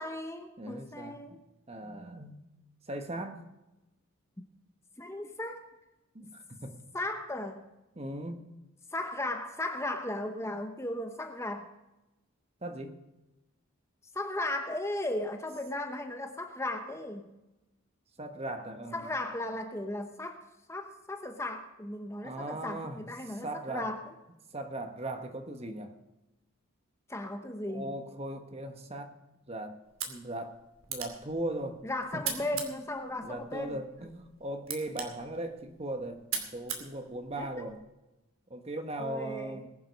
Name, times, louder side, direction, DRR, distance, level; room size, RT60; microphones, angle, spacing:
voice 1, 0.0-1.4 5.0-5.6 6.9-7.6 8.9-11.7 14.1-17.3 18.9-20.4 20.7-24.0 27.1-27.9 31.8-33.8 37.4-37.7 39.0-39.6, left 1 dB, 15° left, 5 dB, 0.9 m, -36 dB
voice 2, 0.6-1.3 1.7-2.4 2.9-3.4 6.1-6.8 7.9-8.5 12.6-13.0 18.2-19.1 22.2-23.9 24.5-25.9 27.7-29.2 29.5-30.6 30.9-31.8 33.2-37.8 38.5-39.7, right 1 dB, 30° right, 6 dB, 1.4 m, -38 dB
sound 1, 29.8-37.8, right 7 dB, 75° right, 2.5 m, -42 dB
21.0 x 7.6 x 5.4 m, 1.0 s
head